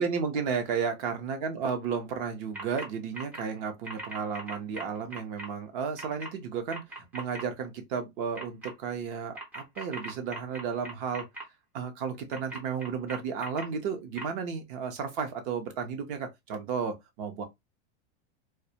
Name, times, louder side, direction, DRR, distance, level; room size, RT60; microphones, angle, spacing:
voice 1, 0.0-11.3 11.7-17.4, right 6 dB, 50° right, 0.7 m, -33 dB
sound 1, 2.5-2.9 3.1-3.4 3.8-5.5 6.0-6.3 6.7-7.4 8.3-8.7 9.3-11.4 12.3-13.6 14.2-14.3, right 2 dB, 5° right, 0.3 m, -39 dB
2.3 x 2.1 x 2.8 m
supercardioid pair, 150°, 34 cm